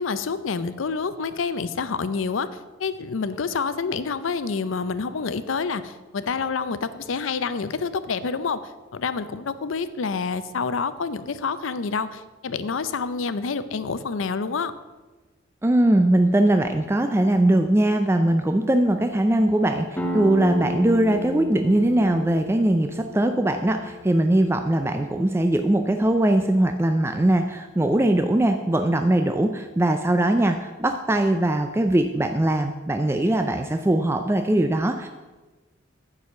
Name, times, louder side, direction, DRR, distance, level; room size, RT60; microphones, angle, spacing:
voice 1, 0.0-14.7, left 5 dB, 80° left, 13 dB, 0.5 m, -28 dB
voice 2, 15.6-19.9 20.1-35.1, right 1 dB, 15° right, 6 dB, 0.3 m, -21 dB
sound 1, 20.0-25.4, left 2 dB, 10° left, 0.8 m, -33 dB
9.6 x 4.9 x 6.8 m, 1.2 s
head